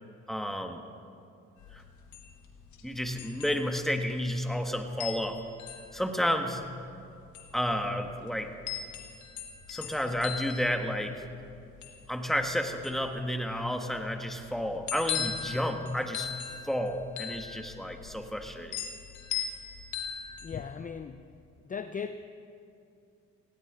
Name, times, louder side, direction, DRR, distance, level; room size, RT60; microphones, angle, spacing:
voice 1, 0.3-0.8 1.7-1.8 2.8-5.4 5.9-6.6 7.5-8.5 9.7-11.2 12.1-16.3 16.6-18.8, equal, ahead, 5 dB, 1.5 m, -31 dB
sound 1, 1.6-20.7, left 8 dB, 85° left, 1.6 m, -40 dB
voice 2, 20.4-21.3 21.6-22.3, left 6 dB, 30° left, 10 dB, 0.6 m, -38 dB
19.0 x 16.5 x 3.9 m, 2.6 s
supercardioid pair, 65°, 29 cm